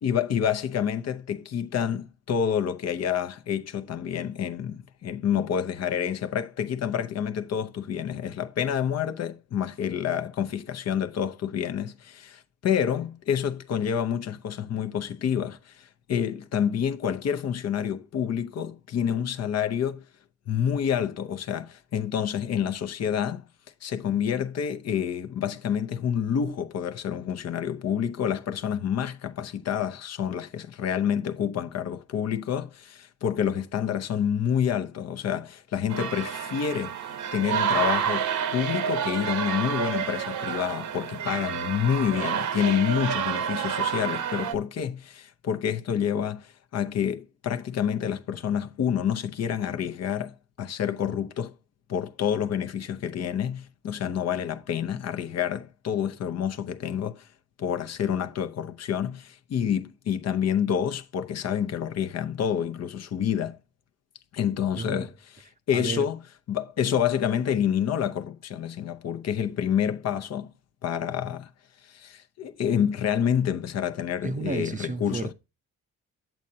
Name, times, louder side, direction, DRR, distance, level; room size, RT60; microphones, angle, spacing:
voice 1, 0.0-20.0 20.5-23.5 23.8-51.5 51.9-57.3 57.6-63.6 64.3-66.2 66.5-70.5 70.8-71.5 71.8-75.3, left 8 dB, 55° left, 0.8 m, -28 dB
sound 1, 35.9-44.5, right 8 dB, 75° right, 1.0 m, -29 dB
voice 2, 64.8-65.1 65.7-66.1 74.2-75.3, right 4 dB, 25° right, 0.5 m, -32 dB
8.1 x 7.4 x 2.7 m
cardioid pair, 90°, 30 cm